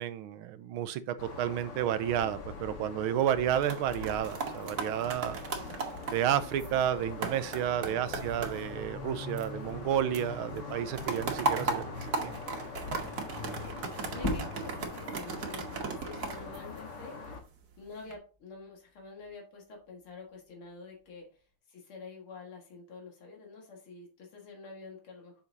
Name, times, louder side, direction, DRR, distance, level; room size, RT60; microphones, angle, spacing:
voice 1, 0.0-5.4 6.1-12.3, right 10 dB, 85° right, 13 dB, 1.5 m, -31 dB
sound 1, 1.2-17.4, left 4 dB, 60° left, 2.0 m, -43 dB
sound 2, 3.4-9.9 10.1-17.3 17.8-18.1, right 4 dB, 55° right, 1.6 m, -37 dB
voice 2, 7.8-8.2 13.3-17.3 17.8-25.4, left 4 dB, 90° left, 1 dB, 2.7 m, -48 dB
sound 3, 17.5-19.3 19.7-21.5, left 1 dB, 15° left, 1.0 m, -42 dB
7.9 x 5.8 x 2.7 m, 0.36 s
omnidirectional pair, 2.3 m